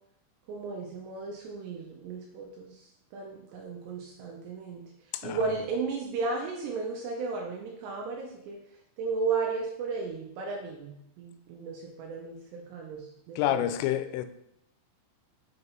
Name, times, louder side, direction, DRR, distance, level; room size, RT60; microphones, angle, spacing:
voice 1, 0.5-2.8 3.1-4.8 5.2-8.6 9.0-10.9 11.2-13.7, right 4 dB, 80° right, 0 dB, 2.6 m, -34 dB
voice 2, 13.4-14.3, left 12 dB, 90° left, 11 dB, 3.1 m, -28 dB
6.6 x 6.5 x 3.0 m, 0.78 s
omnidirectional pair, 5.7 m